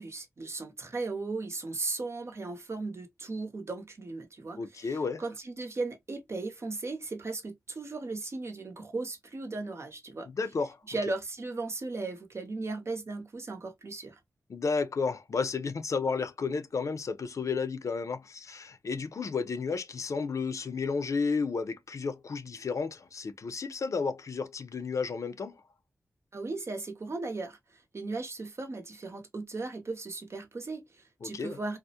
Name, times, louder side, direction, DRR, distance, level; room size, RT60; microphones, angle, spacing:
voice 1, 0.0-10.3 10.9-14.2 26.3-27.6 27.9-31.8, right 3 dB, 50° right, 0.7 m, -37 dB
voice 2, 4.6-5.2 10.3-10.8 14.5-25.6 31.2-31.6, left 4 dB, 65° left, 0.5 m, -32 dB
2.3 x 2.0 x 2.7 m
cardioid pair, 50°, 6 cm